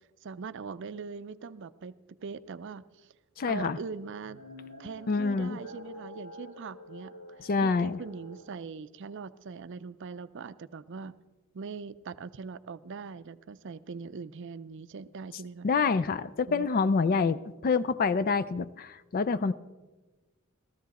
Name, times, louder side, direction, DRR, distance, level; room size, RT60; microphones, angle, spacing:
voice 1, 0.2-1.9 2.2-3.1 3.5-4.4 4.8-7.1 7.6-11.2 11.5-15.7 16.5-16.7 17.0-17.5 19.4-19.5, right 5 dB, 60° right, 15 dB, 0.5 m, -41 dB
voice 2, 3.4-3.8 5.1-5.6 7.5-8.0 15.6-19.5, left 4 dB, 45° left, 14 dB, 0.4 m, -27 dB
sound 1, 4.1-8.5, left 1 dB, 75° left, 4.0 m, -47 dB
15.5 x 14.0 x 4.1 m, 1.2 s
head